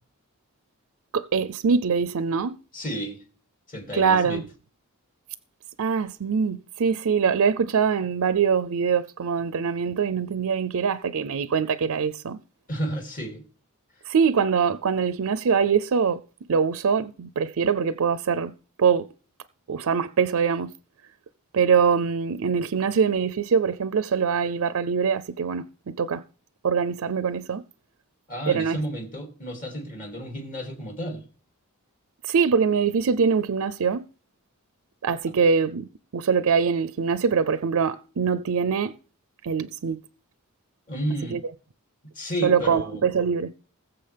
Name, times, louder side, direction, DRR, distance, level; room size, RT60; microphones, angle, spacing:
voice 1, 1.1-2.6 3.9-4.4 5.8-12.4 14.0-16.2 16.5-19.1 19.7-20.7 21.5-26.2 26.6-27.6 28.5-28.8 32.2-34.0 35.0-38.9 39.4-40.0 41.3-41.4 42.4-43.5, right 6 dB, 70° right, 0.5 m, -23 dB
voice 2, 2.7-3.2 3.7-4.4 12.7-13.4 28.3-31.3 40.9-41.4 42.1-43.0, right 1 dB, 40° left, 2.6 m, -32 dB
20.5 x 7.0 x 3.4 m
head